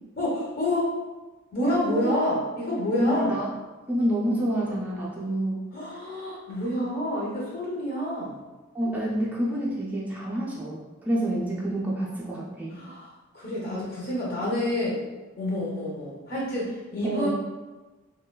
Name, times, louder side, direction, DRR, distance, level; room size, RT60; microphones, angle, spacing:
voice 1, 0.2-1.0 1.5-3.3 5.7-8.4 12.7-13.1 13.3-15.0 15.4-17.3, left 1 dB, 50° left, -5 dB, 0.6 m, -28 dB
voice 2, 1.7-2.1 3.0-3.5 3.9-5.7 8.7-12.8 17.0-17.3, right 1 dB, 10° right, -6 dB, 0.3 m, -27 dB
3.0 x 2.2 x 2.2 m, 1.2 s
head